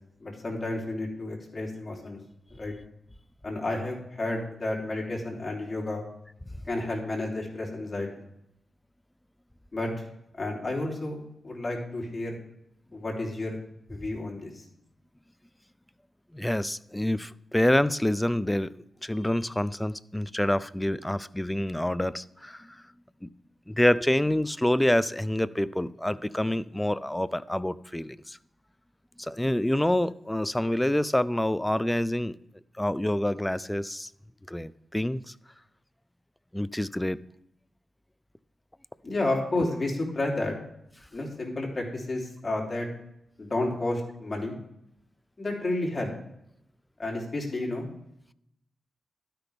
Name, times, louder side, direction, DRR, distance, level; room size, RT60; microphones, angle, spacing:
voice 1, 0.2-2.2 2.6-2.7 3.4-6.0 6.7-8.1 9.7-9.9 10.3-12.4 12.9-13.6 13.9-14.6 39.0-40.5 41.1-42.9 43.4-44.6 45.4-46.1 47.0-47.9, left 2 dB, 40° left, 3.2 m, -31 dB
voice 2, 16.3-22.8 23.2-23.3 23.7-28.4 29.2-32.4 32.8-34.1 34.5-35.3 36.5-37.2, left 1 dB, 10° left, 0.4 m, -27 dB
12.5 x 5.9 x 3.5 m
supercardioid pair, 40°, 0 cm